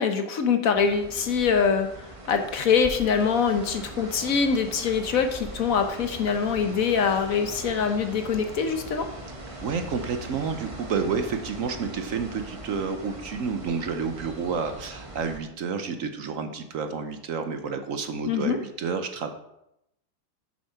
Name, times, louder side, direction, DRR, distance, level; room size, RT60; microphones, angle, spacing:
voice 1, 0.0-9.1 18.2-18.6, left 6 dB, 60° left, 7 dB, 1.2 m, -24 dB
sound 1, 0.7-15.4, right 1 dB, 20° right, 1.2 m, -41 dB
voice 2, 9.6-19.3, right 5 dB, 60° right, 7 dB, 1.1 m, -30 dB
7.5 x 7.3 x 5.7 m, 0.83 s
omnidirectional pair, 1.7 m